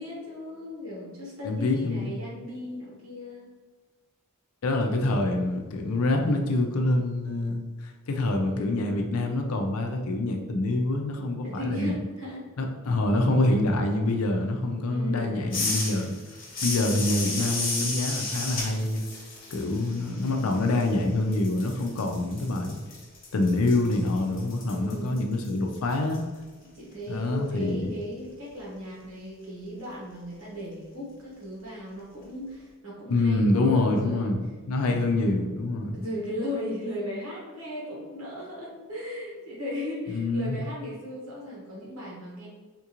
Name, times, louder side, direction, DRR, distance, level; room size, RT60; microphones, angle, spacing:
voice 1, 0.0-3.5 8.4-8.9 11.4-12.5 14.9-15.4 24.7-25.2 26.7-34.3 35.9-42.5, left 1 dB, 70° right, -5 dB, 1.3 m, -36 dB
voice 2, 1.4-2.1 4.6-12.0 12.6-16.1 16.6-19.0 19.5-22.8 23.3-26.2 27.1-27.9 33.1-34.4 34.7-36.0 40.1-40.6, left 2 dB, 90° left, 4 dB, 0.5 m, -26 dB
sound 1, 15.5-21.0 21.3-26.2, left 3 dB, 45° left, 1.0 m, -34 dB
3.6 x 2.4 x 2.9 m, 1.4 s
head